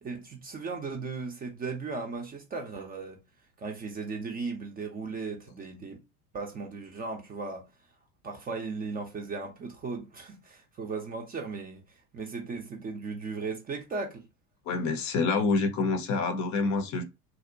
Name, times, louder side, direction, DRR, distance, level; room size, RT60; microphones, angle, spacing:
voice 1, 0.0-3.2 3.6-6.0 6.3-7.7 8.2-14.3, right 4 dB, 20° right, 0.5 m, -37 dB
voice 2, 14.7-17.0, left 3 dB, 40° left, 0.6 m, -27 dB
2.7 x 2.1 x 2.5 m
hypercardioid pair, 80°, 45 cm